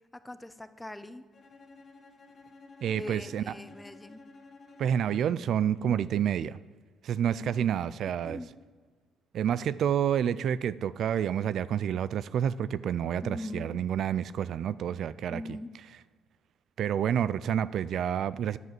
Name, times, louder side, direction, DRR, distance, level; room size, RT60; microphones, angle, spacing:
voice 1, 0.1-1.2 2.9-4.2 7.4-7.7 8.2-8.5 13.2-13.8 15.3-15.7, left 1 dB, 5° left, 0.6 m, -41 dB
Bowed string instrument, 1.3-5.6, left 3 dB, 25° left, 2.1 m, -53 dB
voice 2, 2.8-3.4 4.8-6.6 7.0-8.4 9.3-15.4 16.8-18.6, right 9 dB, 55° right, 0.3 m, -29 dB
10.5 x 8.1 x 7.6 m
cardioid pair, 145°, 0 cm